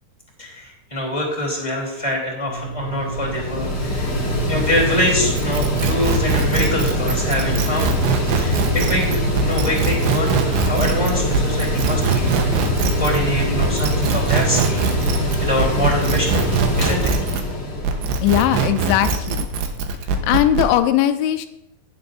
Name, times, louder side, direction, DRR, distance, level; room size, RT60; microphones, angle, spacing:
voice 1, 0.4-14.9 15.4-17.2, left 1 dB, 10° left, -4 dB, 2.1 m, -25 dB
Mechanical fan, 2.4-18.7, equal, 30° left, 2.1 m, -23 dB
sound 1, 5.4-17.5 17.8-20.7, right 5 dB, 75° right, 2.9 m, -22 dB
voice 2, 18.2-19.5 20.1-21.5, left 12 dB, 85° left, 9 dB, 2.9 m, -19 dB
16.5 x 9.8 x 2.6 m, 0.83 s
omnidirectional pair, 5.3 m